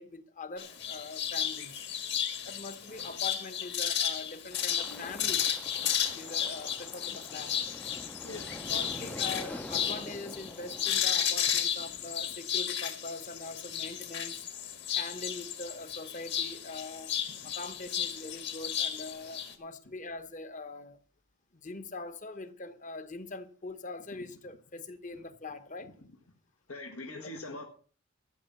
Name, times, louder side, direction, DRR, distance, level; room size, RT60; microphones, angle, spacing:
voice 1, 0.0-1.9 2.5-5.6 6.1-7.6 8.7-14.4 14.9-17.1 17.4-21.0 21.5-25.9 27.1-27.3, left 3 dB, 35° left, 1.0 m, -43 dB
sound 1, 0.6-19.5, left 9 dB, 50° left, 1.7 m, -33 dB
sound 2, 4.5-12.3, left 1 dB, 5° left, 0.5 m, -46 dB
voice 2, 8.2-8.7 26.7-27.6, left 2 dB, 80° left, 1.5 m, -42 dB
13.0 x 7.4 x 6.8 m
head